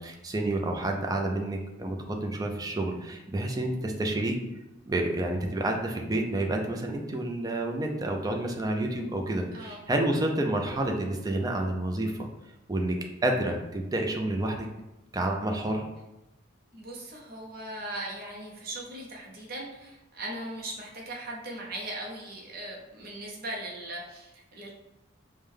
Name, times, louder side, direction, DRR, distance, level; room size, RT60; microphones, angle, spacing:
voice 1, 0.0-4.4 4.9-12.3 12.7-13.0 13.2-14.7 15.1-15.9, right 1 dB, 20° right, 2 dB, 0.4 m, -29 dB
voice 2, 16.7-24.7, right 1 dB, 50° right, -2 dB, 0.7 m, -39 dB
5.0 x 2.2 x 3.5 m, 0.96 s
head